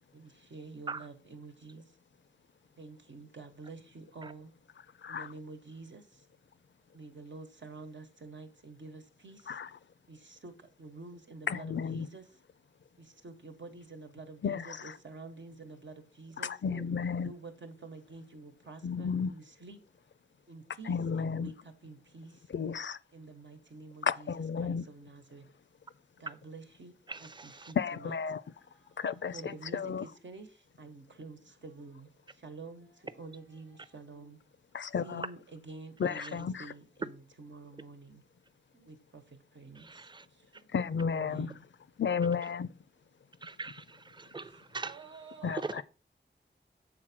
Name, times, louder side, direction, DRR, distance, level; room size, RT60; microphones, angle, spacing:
voice 1, 0.1-1.8 2.8-4.5 5.1-6.0 6.9-9.4 10.1-10.2 10.4-10.5 10.8-12.2 13.2-16.5 17.2-19.8 20.5-21.5 21.8-22.3 23.1-25.4 26.2-26.9 27.2-28.2 29.3-30.5 30.8-32.1 32.4-34.4 35.0-38.2 38.8-38.9 39.6-39.8 41.1-41.6 44.8-45.8, right 3 dB, 85° right, 1.3 m, -48 dB
voice 2, 5.0-5.3 9.5-9.7 11.5-12.1 14.4-15.0 16.4-17.3 18.8-19.3 20.8-21.5 22.5-23.0 24.0-24.9 27.8-28.4 29.0-30.1 34.7-35.3 36.0-36.7 40.7-41.6 42.0-42.7 45.4-45.8, left 6 dB, 80° left, 0.4 m, -33 dB
voice 3, 27.1-27.7 36.1-36.3 39.7-40.3 40.5-40.6 43.4-45.8, right 3 dB, 25° right, 0.6 m, -42 dB
7.8 x 4.0 x 6.0 m
wide cardioid pair, 70°, 19 cm